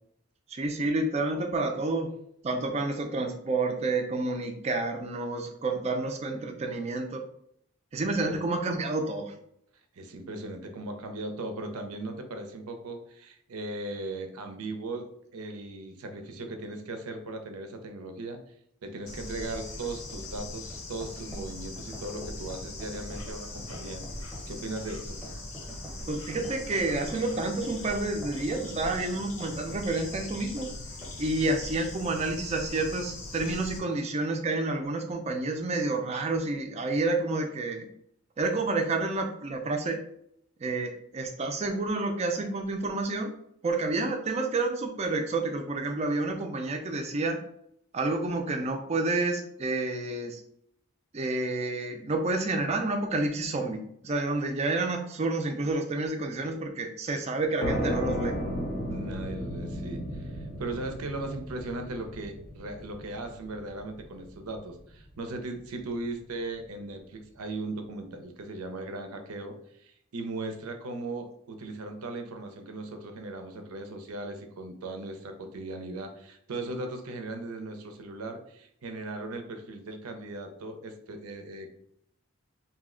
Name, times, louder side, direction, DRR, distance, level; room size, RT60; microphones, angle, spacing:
voice 1, 0.5-2.1 2.4-7.2 7.9-9.3 26.1-30.7 31.2-37.9 38.4-40.0 40.6-43.3 43.6-47.4 47.9-50.4 51.1-58.3, right 2 dB, 30° right, 4 dB, 0.3 m, -29 dB
voice 2, 10.0-18.4 18.8-24.0 24.5-25.2 58.9-81.7, right 2 dB, 90° right, 6 dB, 0.5 m, -38 dB
Bird / Insect, 19.1-33.8, left 2 dB, 75° left, 0.7 m, -40 dB
sound 1, 20.1-30.7 31.0-31.2 31.5-31.7, right 1 dB, 5° right, 0.7 m, -48 dB
sound 2, 57.6-65.0, equal, 40° left, 0.5 m, -34 dB
2.6 x 2.1 x 3.6 m, 0.71 s
head